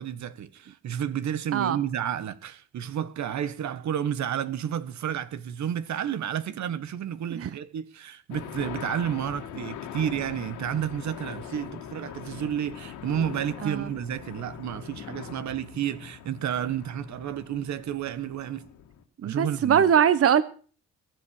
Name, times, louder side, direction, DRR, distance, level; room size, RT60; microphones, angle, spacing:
voice 1, 0.0-18.7 19.2-19.9, right 9 dB, 70° right, 1.6 m, -31 dB
sound 1, 8.3-19.0, left 9 dB, 85° left, 2.2 m, -41 dB
voice 2, 19.2-20.4, right 8 dB, 50° right, 1.1 m, -21 dB
22.5 x 8.3 x 6.7 m
cardioid pair, 90°, 30 cm